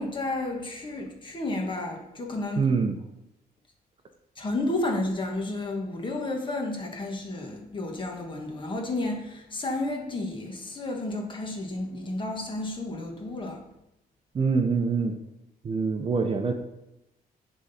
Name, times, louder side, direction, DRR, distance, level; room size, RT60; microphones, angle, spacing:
voice 1, 0.0-2.7 4.4-13.6, left 2 dB, 30° left, 1 dB, 1.4 m, -31 dB
voice 2, 2.6-3.0 14.3-15.2 15.6-16.5, right 5 dB, 35° right, 6 dB, 0.7 m, -25 dB
10.5 x 3.7 x 4.2 m, 0.88 s
cardioid pair, 140°, 16 cm